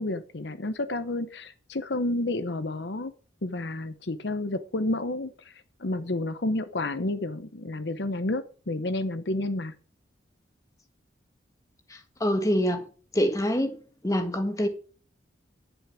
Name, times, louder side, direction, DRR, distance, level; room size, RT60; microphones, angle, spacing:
voice 1, 0.0-3.1 3.4-9.7, left 2 dB, 70° left, 0.9 m, -30 dB
voice 2, 11.9-12.8 13.1-14.7, equal, 20° left, 1.6 m, -26 dB
11.0 x 8.8 x 4.9 m
head